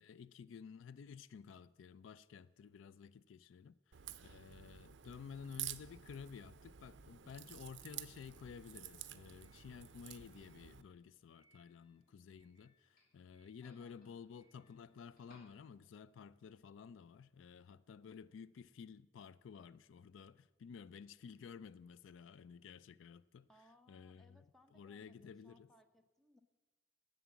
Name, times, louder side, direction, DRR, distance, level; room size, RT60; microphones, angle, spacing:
voice 1, 0.0-23.5 23.9-24.5 24.7-25.7, left 6 dB, 80° left, 0.3 m, -53 dB
Crack, 3.9-10.8, right 12 dB, 65° right, 0.5 m, -51 dB
Doorbell, 7.1-16.1, left 1 dB, 45° left, 2.7 m, -74 dB
voice 2, 13.6-14.0 23.5-26.4, left 1 dB, ahead, 0.6 m, -67 dB
11.0 x 7.1 x 7.1 m
head